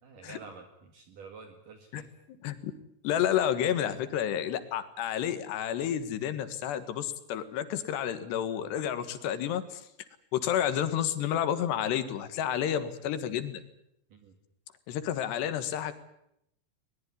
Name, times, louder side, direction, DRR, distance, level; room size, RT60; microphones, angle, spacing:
voice 1, 0.0-2.1 14.1-14.3, right 4 dB, 55° right, 5 dB, 3.2 m, -49 dB
voice 2, 3.0-9.8 10.3-13.6 14.9-15.9, left 10 dB, 85° left, 11 dB, 3.7 m, -30 dB
21.0 x 20.5 x 9.8 m, 0.78 s
omnidirectional pair, 4.8 m